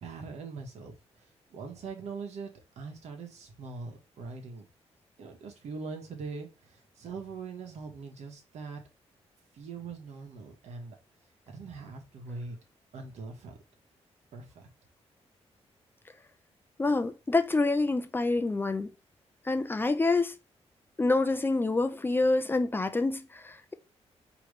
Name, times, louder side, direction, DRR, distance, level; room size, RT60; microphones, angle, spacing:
voice 1, 0.0-4.6 5.2-8.8 9.5-10.9 11.5-12.6 12.9-13.6 14.3-14.7, right 4 dB, 80° right, 1.3 m, -42 dB
voice 2, 16.8-18.9 19.5-20.4 21.0-23.7, left 3 dB, 20° left, 0.4 m, -27 dB
4.9 x 3.1 x 3.2 m
cardioid pair, 110°, 11 cm